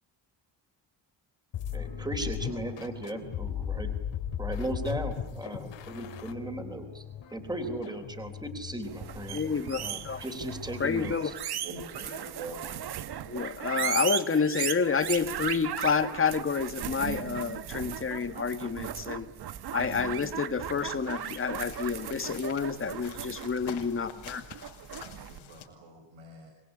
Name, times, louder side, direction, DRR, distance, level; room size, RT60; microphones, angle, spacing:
sound 1, 1.5-11.2, left 8 dB, 70° left, 3.5 m, -38 dB
voice 1, 1.7-3.9 4.4-7.0 7.3-9.4 9.8-11.3, right 1 dB, 10° right, 6 dB, 3.6 m, -37 dB
sound 2, 8.9-25.4, right 10 dB, 55° right, 1.4 m, -37 dB
voice 2, 9.3-10.2 10.8-11.3 13.2-19.3 19.7-24.4, left 5 dB, 30° left, 9 dB, 2.0 m, -29 dB
voice 3, 11.6-13.1 24.9-26.5, right 3 dB, 85° right, 3 dB, 5.8 m, -45 dB
sound 3, 20.6-25.7, left 10 dB, 90° left, 5.9 m, -48 dB
27.0 x 21.5 x 9.9 m, 0.77 s
cardioid pair, 150°, 45 cm